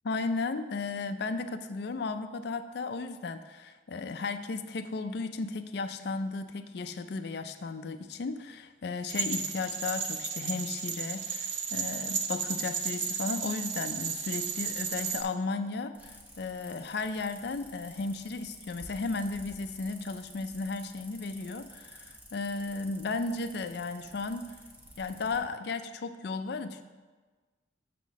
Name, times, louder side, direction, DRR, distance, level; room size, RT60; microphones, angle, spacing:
voice 1, 0.0-24.5 25.0-26.8, left 3 dB, 55° left, 10 dB, 0.4 m, -35 dB
sound 1, 9.1-15.2, right 6 dB, 65° right, 0.6 m, -34 dB
Bicycle - rear hub ratchet clicking, 15.9-25.4, equal, 10° right, 0.8 m, -51 dB
6.6 x 4.0 x 6.1 m, 1.3 s
head